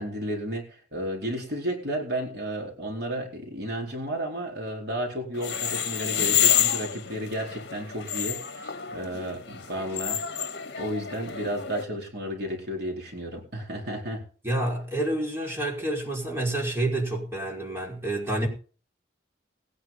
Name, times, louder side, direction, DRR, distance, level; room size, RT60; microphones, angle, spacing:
voice 1, 0.0-10.4 10.8-14.2, right 1 dB, 55° right, 4.4 m, -33 dB
sound 1, 5.3-11.8, left 9 dB, 60° left, 1.9 m, -28 dB
voice 2, 14.4-18.5, right 1 dB, 15° right, 5.3 m, -28 dB
21.0 x 9.8 x 4.1 m
head